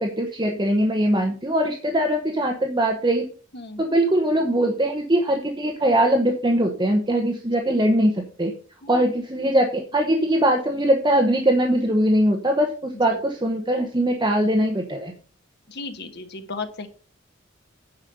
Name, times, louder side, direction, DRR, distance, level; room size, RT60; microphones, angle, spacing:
voice 1, 0.0-3.2 3.8-8.5 8.9-15.1, right 1 dB, 25° right, 2 dB, 1.1 m, -21 dB
voice 2, 15.7-16.9, left 3 dB, 60° left, 8 dB, 1.3 m, -35 dB
9.8 x 5.3 x 5.3 m, 0.38 s
head